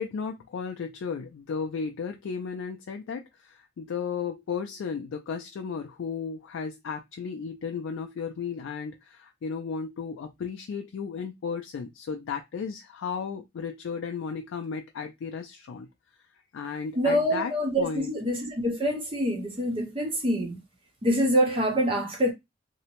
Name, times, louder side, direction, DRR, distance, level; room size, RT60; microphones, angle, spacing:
voice 1, 0.0-15.9 16.5-18.1, left 6 dB, 75° left, 0.3 m, -34 dB
voice 2, 17.0-20.6 21.0-22.3, equal, 25° right, 0.5 m, -25 dB
2.7 x 2.0 x 2.8 m
head